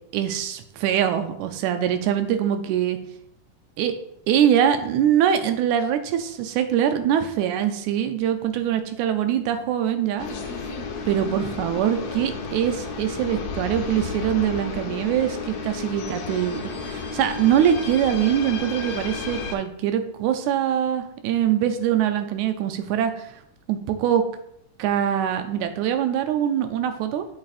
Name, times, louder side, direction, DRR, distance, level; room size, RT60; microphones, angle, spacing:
voice 1, 0.1-3.0 3.8-3.9 4.3-10.3 11.1-23.3 23.7-24.2 24.8-27.3, right 10 dB, 80° right, 8 dB, 1.9 m, -23 dB
sound 1, 10.2-19.6, left 4 dB, 70° left, 1.6 m, -32 dB
7.3 x 6.1 x 2.5 m, 0.74 s
omnidirectional pair, 3.6 m